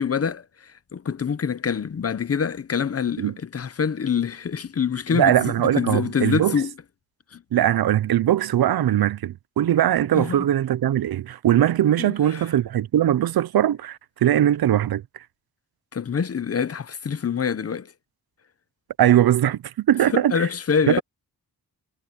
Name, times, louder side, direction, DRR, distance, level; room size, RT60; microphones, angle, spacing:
voice 1, 0.0-6.7 7.3-7.4 10.1-10.5 12.0-12.4 15.9-17.9 20.1-21.0, left 6 dB, 40° left, 0.7 m, -26 dB
voice 2, 5.1-6.6 7.5-15.2 19.0-20.5 20.9-21.0, right 11 dB, 75° right, 0.6 m, -20 dB
wide cardioid pair, 165°, 37 cm